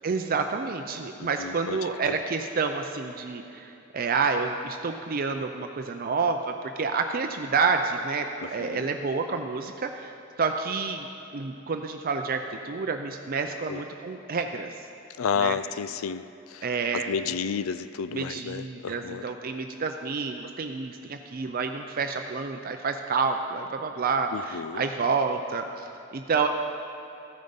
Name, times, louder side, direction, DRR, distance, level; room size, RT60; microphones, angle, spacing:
voice 1, 0.0-14.7 15.4-15.6 16.6-17.1 18.1-26.5, right 4 dB, 45° right, 5 dB, 0.5 m, -29 dB
voice 2, 1.2-1.8 2.1-2.2 8.4-8.9 13.7-13.8 15.2-16.7 16.9-19.3 24.3-24.8, left 6 dB, 75° left, 15 dB, 0.4 m, -31 dB
14.0 x 9.3 x 5.2 m, 2.8 s
head